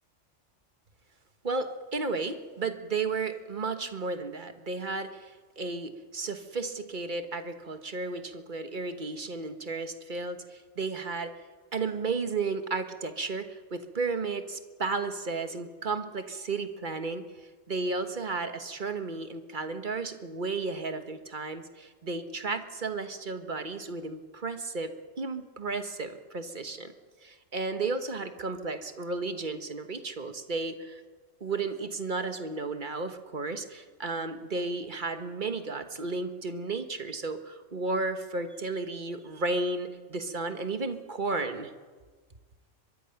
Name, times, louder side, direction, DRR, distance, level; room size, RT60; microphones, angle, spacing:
voice 1, 1.4-11.3 11.7-17.2 17.7-24.9 25.2-26.9 27.2-31.0 31.4-41.7, right 3 dB, 40° right, 8 dB, 1.4 m, -33 dB
23.5 x 22.0 x 5.8 m, 1.4 s
omnidirectional pair, 1.3 m